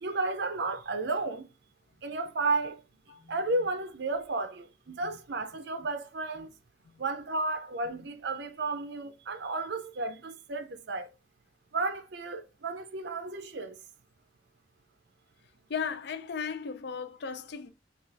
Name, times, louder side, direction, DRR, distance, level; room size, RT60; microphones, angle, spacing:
voice 1, 0.0-1.5 2.0-2.8 3.3-6.5 7.0-11.1 11.7-13.8, right 3 dB, 60° right, 0.5 m, -33 dB
voice 2, 15.7-17.7, left 6 dB, 55° left, 0.4 m, -36 dB
5.9 x 2.4 x 3.3 m
head